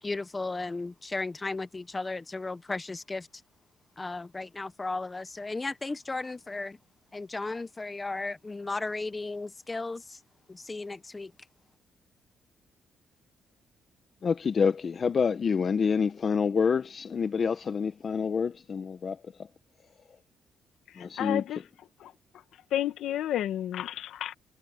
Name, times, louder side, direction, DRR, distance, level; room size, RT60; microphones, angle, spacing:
voice 1, 0.0-3.3 4.0-6.8 7.1-10.2 10.5-11.3, left 3 dB, 20° left, 1.0 m, -35 dB
voice 2, 14.2-19.5 21.0-21.4, left 6 dB, 45° left, 1.0 m, -27 dB
voice 3, 21.0-21.6 22.0-22.1 22.7-24.3, left 12 dB, 80° left, 1.7 m, -31 dB
cardioid pair, 90°, 0 cm